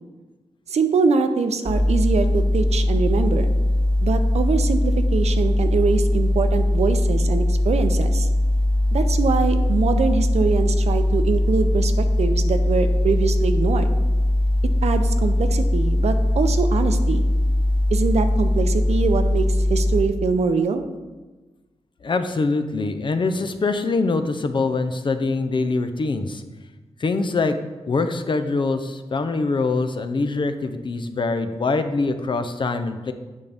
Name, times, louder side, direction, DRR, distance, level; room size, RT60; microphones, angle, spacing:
voice 1, 0.7-3.5 4.0-8.3 8.9-13.9 14.8-17.3 17.9-20.8, right 5 dB, 80° right, 8 dB, 0.6 m, -23 dB
sound 1, 1.7-20.0, left 1 dB, 10° left, 2.0 m, -20 dB
voice 2, 22.0-26.4 27.0-27.6 27.9-33.1, left 3 dB, 45° left, 8 dB, 0.5 m, -24 dB
8.2 x 5.4 x 3.4 m, 1.2 s
wide cardioid pair, 90°, 11 cm